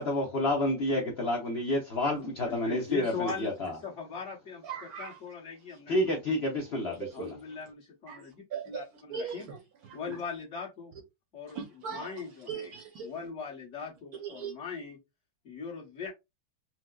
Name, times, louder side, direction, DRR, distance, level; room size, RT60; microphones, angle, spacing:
voice 1, 0.0-3.8 5.9-7.3, left 1 dB, 75° left, 0.5 m, -29 dB
voice 2, 2.4-3.5 3.8-4.6 5.0-6.0 7.1-9.5 9.9-10.9 11.3-11.6 11.9-12.7 13.0-15.0 15.4-16.1, left 5 dB, 45° left, 1.3 m, -39 dB
voice 3, 4.6-5.2 7.0-7.3 8.1-10.2 11.5-13.1 14.2-14.5, right 6 dB, 65° right, 1.0 m, -40 dB
4.5 x 2.0 x 2.3 m
omnidirectional pair, 2.0 m